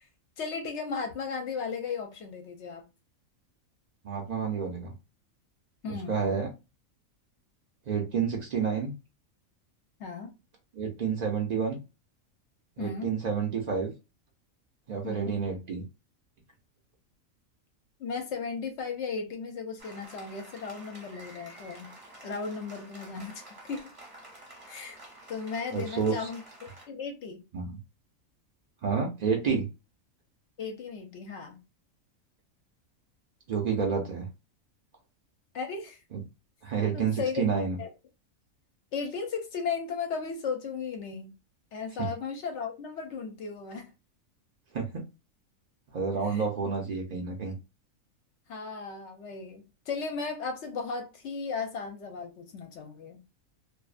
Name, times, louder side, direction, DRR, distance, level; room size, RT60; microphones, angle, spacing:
voice 1, 0.4-2.8 5.8-6.2 10.0-10.3 12.8-13.1 15.0-15.4 18.0-21.9 22.2-23.9 24.7-25.0 25.3-26.4 26.9-27.4 30.6-31.6 35.5-36.0 36.9-37.4 37.8-37.9 38.9-41.3 41.7-43.9 46.3-46.5 48.5-53.2, left 5 dB, 65° left, 0.8 m, -35 dB
voice 2, 4.0-4.9 5.9-6.5 7.9-8.9 10.7-11.8 12.8-13.9 14.9-15.8 25.7-26.1 27.5-27.7 28.8-29.7 33.5-34.3 36.1-36.2 36.6-37.8 42.0-42.1 44.7-45.0 45.9-47.5, right 6 dB, 70° right, 0.4 m, -29 dB
Applause, 19.8-26.9, right 1 dB, 30° right, 0.8 m, -50 dB
2.6 x 2.1 x 2.4 m
omnidirectional pair, 1.4 m